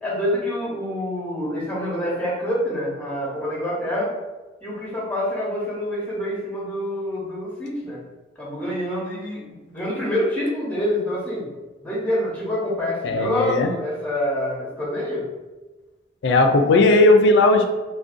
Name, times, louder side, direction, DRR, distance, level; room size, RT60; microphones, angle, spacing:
voice 1, 0.0-4.1 4.6-8.0 8.4-11.5 11.8-15.3, equal, 10° left, -5 dB, 0.6 m, -26 dB
voice 2, 13.0-13.7 16.2-17.7, left 2 dB, 65° left, 4 dB, 0.3 m, -16 dB
2.5 x 2.1 x 2.5 m, 1.2 s
head